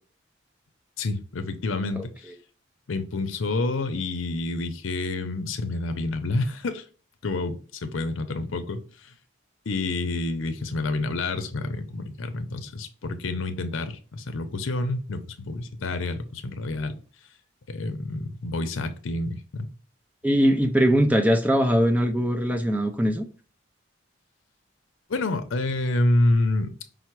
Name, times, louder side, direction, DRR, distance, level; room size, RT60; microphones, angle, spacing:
voice 1, 1.0-2.3 2.9-6.8 7.2-9.1 9.7-17.0 17.7-19.7 25.1-26.7, left 2 dB, 85° left, 0.6 m, -28 dB
voice 2, 20.2-23.2, equal, 10° right, 0.4 m, -21 dB
5.5 x 2.0 x 4.5 m
head